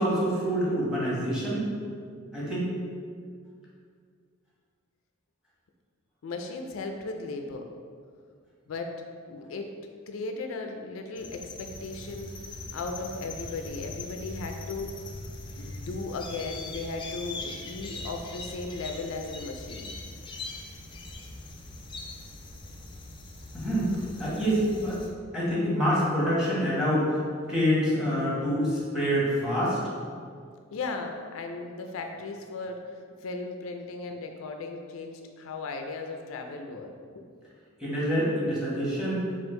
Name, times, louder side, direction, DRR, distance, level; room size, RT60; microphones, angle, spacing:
voice 1, 0.0-1.6 2.3-2.7 9.4-9.5 23.5-25.0 25.3-27.2 27.5-29.8 37.8-39.3, equal, 5° right, -7 dB, 1.1 m, -26 dB
voice 2, 6.2-7.6 8.7-9.0 9.3-9.7 10.1-12.3 12.7-14.9 15.6-19.9 30.7-37.2, left 3 dB, 90° left, 4 dB, 0.4 m, -36 dB
sound 1, 11.1-25.1, left 2 dB, 25° left, 0.4 m, -41 dB
4.4 x 2.4 x 3.7 m, 2.1 s
head